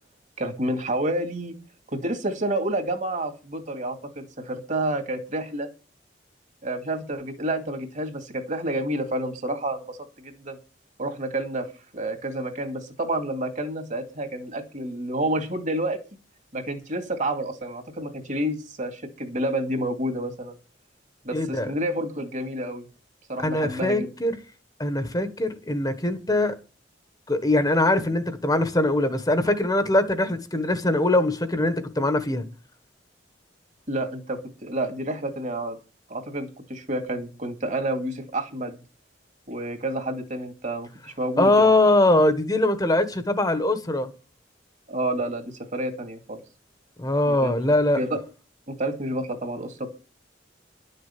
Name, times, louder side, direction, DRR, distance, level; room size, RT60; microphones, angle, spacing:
voice 1, 0.4-1.5 1.9-5.7 6.6-10.6 11.0-11.7 11.9-16.0 16.5-20.6 21.2-22.9 23.3-24.1 33.9-35.8 36.1-38.8 39.5-40.9 41.2-41.7 44.9-46.4 47.3-47.6 48.0-48.1 48.7-49.9, right 1 dB, 45° right, 2.3 m, -29 dB
voice 2, 21.3-21.7 23.4-24.4 24.8-26.6 27.3-32.5 41.4-44.1 47.0-48.0, left 2 dB, 20° left, 1.4 m, -22 dB
12.0 x 6.7 x 8.5 m
head